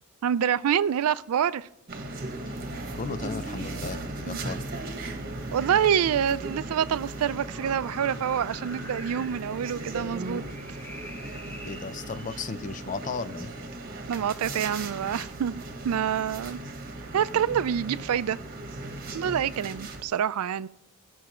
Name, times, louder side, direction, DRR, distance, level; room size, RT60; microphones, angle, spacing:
voice 1, 0.2-1.7 4.3-4.4 5.5-10.4 14.1-16.6 17.1-18.4 19.1-20.7, right 8 dB, 75° right, 0.4 m, -26 dB
sound 1, 1.9-20.0, right 2 dB, 40° right, 1.2 m, -37 dB
voice 2, 2.9-4.8 11.6-13.5, left 4 dB, 35° left, 0.5 m, -35 dB
sound 2, 6.4-12.5, left 1 dB, 10° left, 0.9 m, -48 dB
17.5 x 6.3 x 4.3 m
head